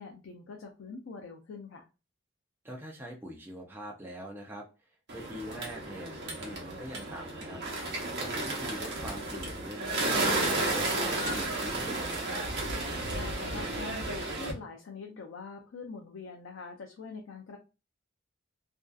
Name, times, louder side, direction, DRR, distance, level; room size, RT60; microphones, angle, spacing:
voice 1, 0.0-1.9 13.1-17.6, left 4 dB, 70° left, 2 dB, 0.4 m, -44 dB
voice 2, 2.6-4.7 5.1-7.6 8.1-12.4, equal, 10° right, -1 dB, 0.4 m, -43 dB
Bird, 5.1-14.5, right 2 dB, 55° right, 0.8 m, -33 dB
2.6 x 2.3 x 2.3 m, 0.30 s
head